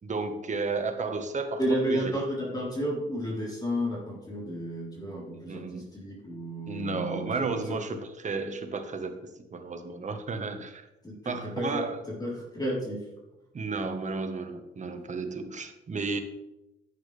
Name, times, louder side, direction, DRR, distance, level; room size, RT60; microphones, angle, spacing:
voice 1, 0.0-1.6 1.9-2.1 5.5-5.8 6.7-9.2 9.5-10.9 11.2-12.0 13.5-16.2, right 4 dB, 35° right, 7 dB, 1.4 m, -33 dB
voice 2, 1.6-7.8 11.0-11.8 12.2-13.0, equal, 20° left, -4 dB, 3.8 m, -32 dB
11.0 x 8.8 x 3.4 m, 0.96 s
cardioid pair, 90°, 20 cm